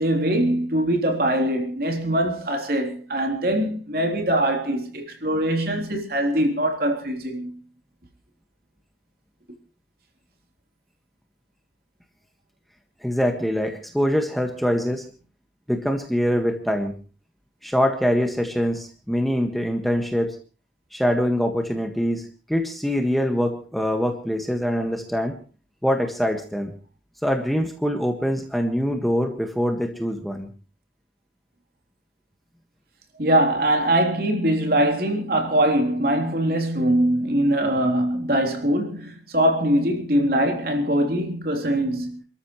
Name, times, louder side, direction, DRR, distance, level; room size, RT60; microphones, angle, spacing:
voice 1, 0.0-7.5 33.2-42.2, right 1 dB, 50° right, 3.4 m, -22 dB
voice 2, 13.0-15.1 15.7-16.9 17.6-20.4 20.9-25.4 25.8-26.7 27.2-30.5, equal, ahead, 1.6 m, -24 dB
29.0 x 13.5 x 3.1 m
head